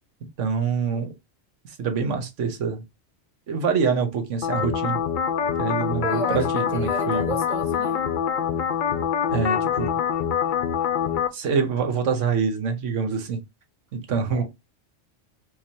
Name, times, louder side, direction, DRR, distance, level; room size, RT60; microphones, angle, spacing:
voice 1, 0.4-1.1 1.6-2.8 3.5-5.0 5.6-7.3 9.3-10.0 11.3-13.4 13.9-14.4, right 6 dB, 85° right, 1.3 m, -25 dB
sound 1, 4.4-11.3, left 8 dB, 55° left, 0.6 m, -25 dB
voice 2, 6.0-8.0 14.3-14.4, right 1 dB, 40° right, 1.8 m, -33 dB
4.8 x 2.6 x 2.8 m
omnidirectional pair, 1.2 m